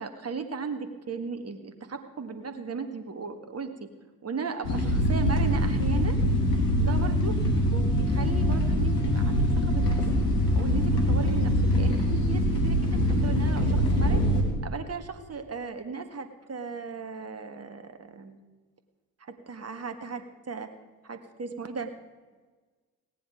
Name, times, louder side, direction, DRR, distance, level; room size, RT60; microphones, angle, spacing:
voice 1, 0.0-3.9 4.2-6.2 6.8-7.4 7.7-10.0 10.5-14.2 14.6-18.4 19.2-20.7 21.0-21.9, right 5 dB, 30° right, 7 dB, 1.8 m, -36 dB
sound 1, 4.6-14.4, equal, 80° left, 2.5 m, -24 dB
17.5 x 10.0 x 5.1 m, 1.4 s
figure-of-eight pair, 50°, 47 cm